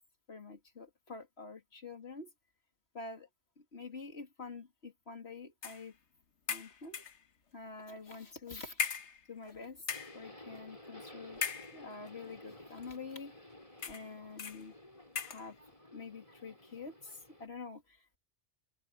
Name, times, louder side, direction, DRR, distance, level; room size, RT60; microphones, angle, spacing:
voice 1, 0.3-2.3 2.9-3.3 3.6-6.0 6.5-7.0 7.5-8.9 9.3-9.8 10.1-11.4 11.7-13.3 13.8-14.7 15.2-15.6 15.9-18.2, left 4 dB, 65° left, 3.0 m, -47 dB
sound 1, 5.6-5.9 6.5-7.2 8.1-8.2 8.8-9.5 9.8-10.3 11.4-12.1 12.8-13.0 13.8-14.1 14.4-14.6 15.2-15.5, left 6 dB, 85° left, 1.5 m, -38 dB
Subway metro underground, 9.9-17.5, left 1 dB, 30° left, 6.9 m, -54 dB
open air
omnidirectional pair, 1.2 m